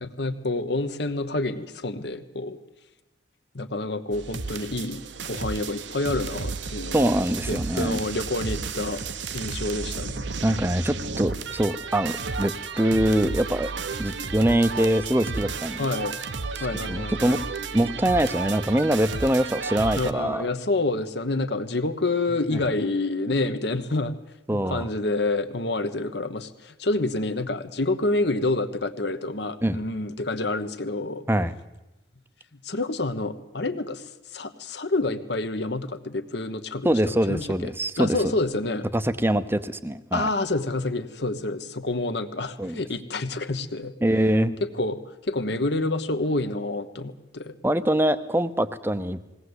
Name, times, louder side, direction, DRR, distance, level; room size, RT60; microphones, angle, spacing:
voice 1, 0.0-2.6 3.5-7.1 7.5-9.0 9.3-10.3 15.8-16.2 16.6-17.4 20.0-24.1 24.5-31.2 32.6-38.9 40.1-43.9 44.6-47.5, left 2 dB, 60° left, 10 dB, 1.2 m, -28 dB
sound 1, 4.1-20.1, right 4 dB, 70° right, 1.0 m, -33 dB
voice 2, 6.9-8.0 10.4-13.7 14.0-15.9 16.6-17.4 17.7-20.5 22.5-22.6 24.5-24.9 29.6-29.8 31.3-31.5 36.8-38.3 38.9-40.3 42.6-42.8 44.0-44.6 47.6-49.2, right 1 dB, 10° right, 13 dB, 0.8 m, -24 dB
21.0 x 17.5 x 8.1 m, 1.0 s
head